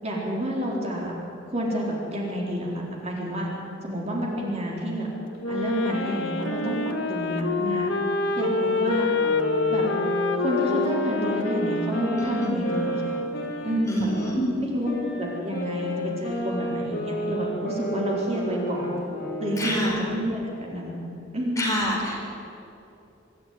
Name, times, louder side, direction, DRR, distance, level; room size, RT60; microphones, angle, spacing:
voice 1, 0.0-1.1 1.5-3.5 3.8-5.1 5.5-6.8 7.1-7.9 8.3-9.1 9.7-9.8 10.4-13.2 13.6-14.1 14.6-19.0 19.4-21.0 21.3-21.8, equal, 35° right, -3 dB, 4.2 m, -29 dB
Wind instrument woodwind instrument, 5.4-13.7, left 3 dB, 75° left, 1.6 m, -27 dB
sound 1, 8.9-14.3 14.8-19.7, right 1 dB, 55° left, 4.9 m, -31 dB
voice 2, 12.2-12.5 13.9-14.5 19.6-20.0 21.6-22.3, equal, 15° left, -3 dB, 4.8 m, -28 dB
24.5 x 13.0 x 9.7 m, 2.8 s
head